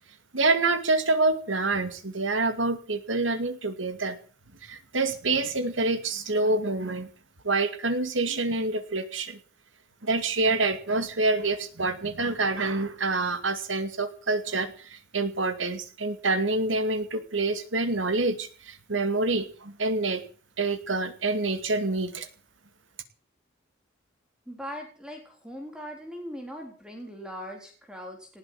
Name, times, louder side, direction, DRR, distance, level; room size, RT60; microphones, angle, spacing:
voice 1, 0.3-4.2 4.6-7.1 7.4-9.4 10.0-20.2 20.6-22.3, right 3 dB, 85° right, 10 dB, 2.3 m, -27 dB
voice 2, 24.5-28.4, equal, 5° right, 2 dB, 3.9 m, -40 dB
18.5 x 7.8 x 8.9 m, 0.41 s
head